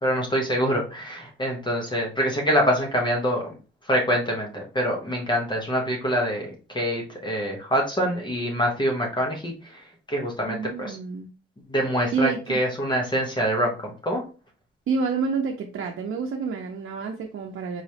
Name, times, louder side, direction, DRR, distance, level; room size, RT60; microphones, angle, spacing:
voice 1, 0.0-3.5 3.9-11.0 11.7-14.2, equal, 20° left, 1.0 m, -25 dB
voice 2, 10.5-11.3 12.1-12.6 14.9-17.8, right 5 dB, 75° right, 0.6 m, -28 dB
4.8 x 3.0 x 2.8 m
wide cardioid pair, 135°, 21 cm